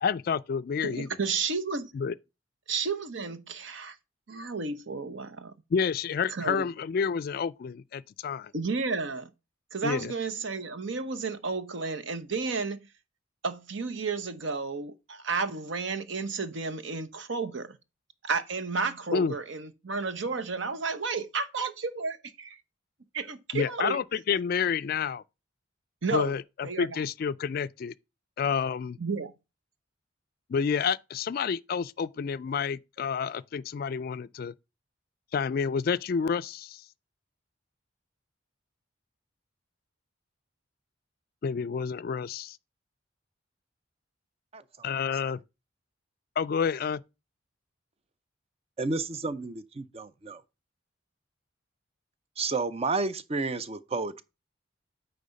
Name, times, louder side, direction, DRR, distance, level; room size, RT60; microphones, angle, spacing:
voice 1, 0.0-1.1 1.9-2.1 5.7-8.5 9.8-10.1 19.1-19.3 23.5-25.2 26.1-27.9 28.4-29.0 30.5-34.5 35.3-36.8 41.4-42.6 44.8-45.4 46.4-47.0, left 6 dB, 50° left, 0.3 m, -29 dB
voice 2, 0.8-1.9 2.7-4.0 4.3-5.5 6.3-6.7 8.5-9.3 9.7-12.9 13.4-17.8 18.2-22.6 23.1-24.0 26.0-26.4 26.6-27.0 29.0-29.3, right 4 dB, 65° right, 0.8 m, -32 dB
voice 3, 48.8-50.4 52.4-54.2, right 3 dB, 30° right, 0.5 m, -31 dB
9.3 x 3.5 x 5.2 m
head